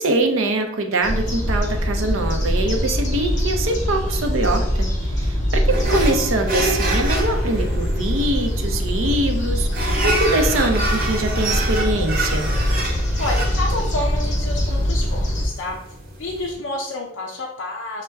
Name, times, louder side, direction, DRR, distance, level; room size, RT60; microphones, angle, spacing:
voice 1, 0.0-4.9 5.1-12.5, right 2 dB, 80° right, 4 dB, 0.6 m, -23 dB
sound 1, 1.0-15.5, equal, 40° left, 0.8 m, -23 dB
sound 2, 5.7-16.5, right 1 dB, 45° right, 1.0 m, -28 dB
voice 2, 13.2-15.8 16.2-18.0, left 2 dB, 65° left, -1 dB, 0.5 m, -29 dB
5.7 x 2.1 x 3.4 m, 0.83 s
head